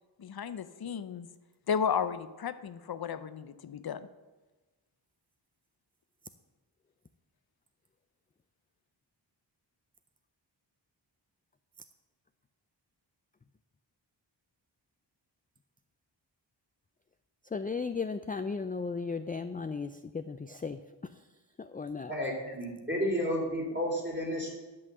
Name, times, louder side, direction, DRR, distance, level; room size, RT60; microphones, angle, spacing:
voice 1, 0.2-1.3 1.7-4.1, left 7 dB, 55° left, 12 dB, 0.7 m, -33 dB
voice 2, 17.5-21.2 21.6-22.1, left 4 dB, 20° left, 10 dB, 0.3 m, -36 dB
voice 3, 22.1-24.5, equal, 25° right, -2 dB, 3.3 m, -32 dB
11.0 x 5.7 x 7.6 m, 1.2 s
wide cardioid pair, 115°, 45 cm